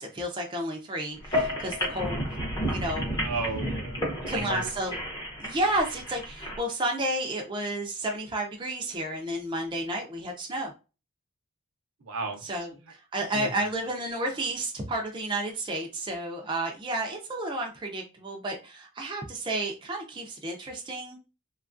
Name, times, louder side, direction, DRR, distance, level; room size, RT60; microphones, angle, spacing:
voice 1, 0.0-2.4 2.7-3.1 4.3-5.0 5.4-10.7 12.4-21.2, right 1 dB, 20° right, 1 dB, 0.4 m, -31 dB
sound 1, 1.2-6.6, equal, 15° left, 0.6 m, -32 dB
voice 2, 3.2-4.7 12.0-12.5 13.3-13.7, right 3 dB, 70° right, 3 dB, 0.6 m, -34 dB
2.9 x 2.3 x 2.4 m, 0.31 s
head